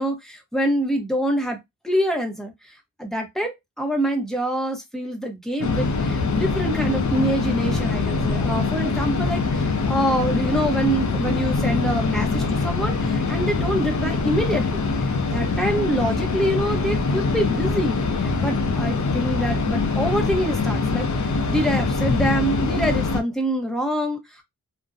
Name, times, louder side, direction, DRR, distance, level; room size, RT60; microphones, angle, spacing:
voice 1, 0.0-24.4, right 1 dB, ahead, 0.8 m, -26 dB
sound 1, 5.6-23.2, left 4 dB, 55° left, 0.6 m, -23 dB
2.5 x 2.1 x 2.4 m
wide cardioid pair, 100°, 36 cm